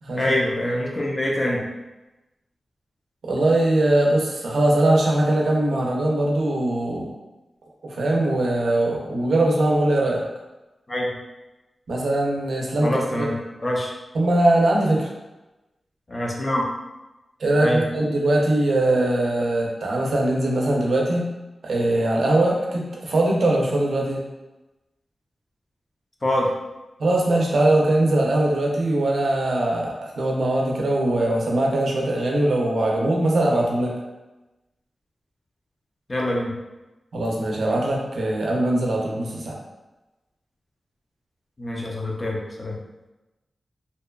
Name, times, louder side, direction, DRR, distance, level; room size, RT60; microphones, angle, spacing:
voice 1, 0.2-1.7 10.9-11.1 12.8-13.9 16.1-16.6 17.6-17.8 26.2-26.5 36.1-36.6 41.6-42.8, left 1 dB, 25° left, -2 dB, 0.4 m, -25 dB
voice 2, 3.2-7.1 7.8-10.3 11.9-13.3 14.1-15.1 17.4-21.3 21.6-24.2 27.0-34.0 37.1-39.6, right 1 dB, 80° right, -2 dB, 0.5 m, -21 dB
2.7 x 2.2 x 2.2 m, 1.1 s
wide cardioid pair, 155°, 0 cm